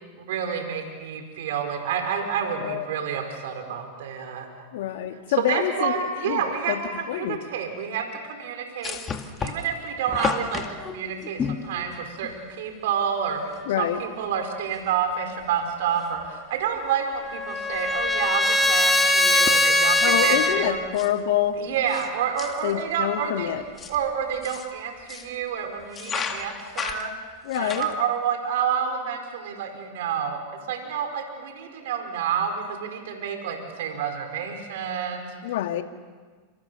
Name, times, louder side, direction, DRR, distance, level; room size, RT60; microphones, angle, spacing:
voice 1, 0.2-4.6 5.4-20.8 21.6-23.5 23.9-27.1 27.5-30.4 30.7-35.3, right 7 dB, 75° right, 4 dB, 5.0 m, -29 dB
voice 2, 4.7-6.8 7.1-7.4 13.7-14.0 20.0-21.6 22.6-23.6 27.4-27.9 35.4-35.8, left 12 dB, 75° left, 6 dB, 2.2 m, -26 dB
sound 1, 8.8-12.4 13.6-13.7 13.9-14.0 14.7-15.1 15.4-16.3 16.6-16.9 17.1-22.1 22.4-22.8 23.4-25.4 25.8-28.0, left 6 dB, 25° left, 2.2 m, -35 dB
Trumpet, 16.8-20.7, left 1 dB, 5° left, 2.3 m, -21 dB
29.5 x 27.5 x 7.0 m, 1.5 s
hypercardioid pair, 120°, 0 cm